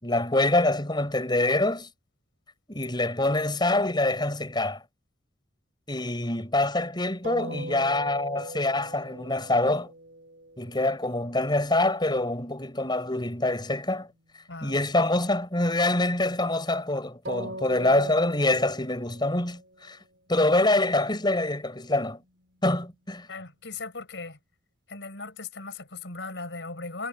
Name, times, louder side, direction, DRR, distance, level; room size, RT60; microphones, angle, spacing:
voice 1, 0.0-1.9 2.7-4.8 5.9-9.9 10.6-14.1 14.6-20.0 20.3-22.2 22.6-23.3, left 2 dB, 25° left, 5.7 m, -25 dB
sound 1, 7.2-11.0 17.2-20.0 20.5-22.8, right 1 dB, 65° right, 4.2 m, -41 dB
voice 2, 23.3-24.4 24.9-27.1, left 3 dB, 70° left, 4.4 m, -38 dB
head